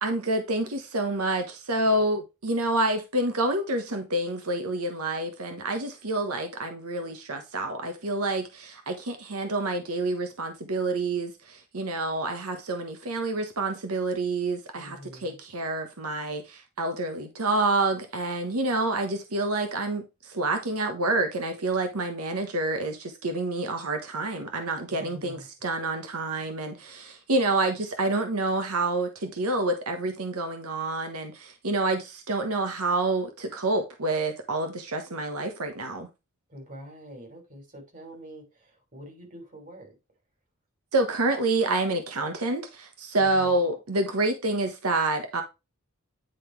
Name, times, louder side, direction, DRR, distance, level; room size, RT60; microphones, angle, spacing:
voice 1, 0.0-36.1 40.9-45.4, right 2 dB, 90° right, 1.2 m, -28 dB
voice 2, 14.7-15.4 24.9-25.5 36.5-40.0 43.1-43.6, equal, 35° right, 3.5 m, -46 dB
10.0 x 3.9 x 4.6 m
head